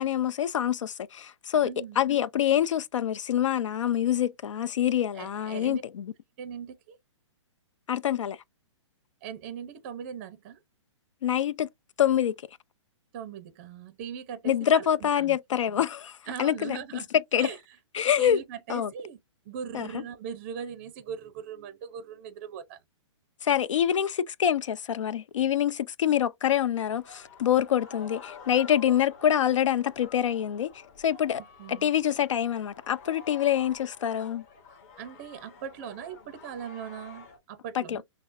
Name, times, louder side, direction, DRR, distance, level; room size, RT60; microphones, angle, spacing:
voice 1, 0.0-1.7 2.0-6.1 7.9-8.4 11.2-11.7 12.0-12.3 14.4-16.8 17.1-17.5 17.9-18.4 18.7-18.9 19.7-20.0 23.4-30.7 31.0-31.4 31.7-34.4 37.7-38.0, left 10 dB, 70° left, 0.6 m, -26 dB
voice 2, 1.6-2.0 5.1-5.8 6.4-7.0 9.2-10.6 13.1-15.4 16.3-17.1 17.4-17.6 18.0-19.2 19.4-22.8 31.4-31.9 35.0-38.0, right 8 dB, 25° right, 0.5 m, -40 dB
sound 1, 26.9-37.4, left 4 dB, 30° left, 1.1 m, -49 dB
6.0 x 2.0 x 2.5 m
hypercardioid pair, 170°, 16 cm